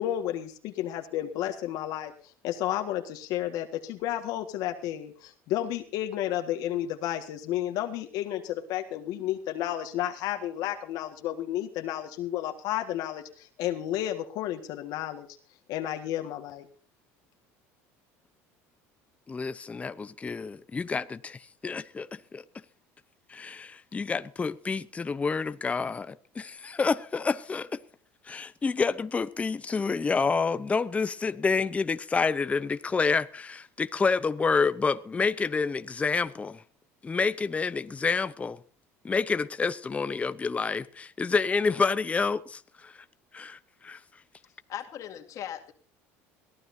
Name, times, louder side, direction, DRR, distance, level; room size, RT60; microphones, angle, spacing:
voice 1, 0.0-2.1 2.4-15.3 15.7-16.7, left 12 dB, 65° left, 1.7 m, -32 dB
voice 2, 19.3-21.4 21.6-22.1 22.3-22.4 23.3-27.8 28.3-36.6 37.0-38.6 39.0-42.9 43.3-43.6 43.8-44.0, left 4 dB, 20° left, 0.7 m, -28 dB
voice 3, 44.7-45.7, left 10 dB, 50° left, 2.2 m, -38 dB
22.5 x 15.0 x 2.7 m
supercardioid pair, 110°, 7 cm